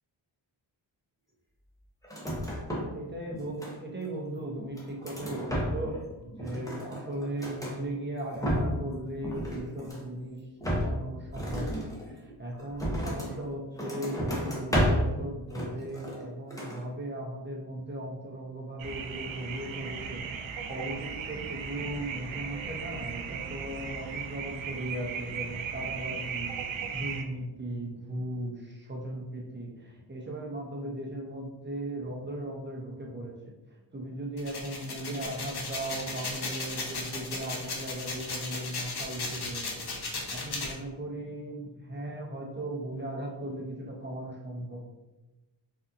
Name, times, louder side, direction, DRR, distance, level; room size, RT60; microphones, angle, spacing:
sound 1, 2.0-3.0 3.3-4.1 4.6-6.0 6.3-7.8 8.2-8.9 9.2-10.1 10.6-13.4 13.8-15.2 15.5-16.3 16.5-16.8, equal, 5° left, 0.9 m, -32 dB
voice 1, 2.9-10.4 10.7-33.3 33.9-39.8 40.3-44.8, right 1 dB, 25° right, -2 dB, 0.9 m, -37 dB
sound 2, 18.8-27.2, right 6 dB, 75° right, 0.5 m, -37 dB
sound 3, 34.4-40.7, left 3 dB, 55° left, 0.8 m, -36 dB
3.9 x 2.6 x 2.6 m, 1.1 s
cardioid pair, 50°, 47 cm